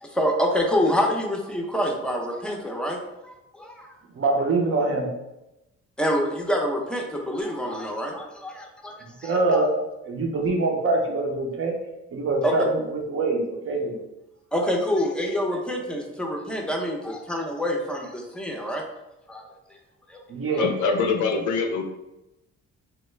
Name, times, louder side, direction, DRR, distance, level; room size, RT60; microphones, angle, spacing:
voice 1, 0.0-3.0 3.2-3.9 6.0-9.4 12.4-12.5 14.5-18.8 19.3-19.4 20.1-20.2 20.5-20.7, equal, 5° left, 0 dB, 0.6 m, -26 dB
voice 2, 4.2-5.1 9.2-9.7 10.0-11.7 12.1-12.8 13.1-13.9 20.3-20.7, right 3 dB, 50° right, 1 dB, 0.7 m, -24 dB
voice 3, 20.6-21.8, left 4 dB, 75° left, 5 dB, 0.5 m, -23 dB
2.9 x 2.2 x 3.2 m, 0.93 s
cardioid pair, 90°, 30 cm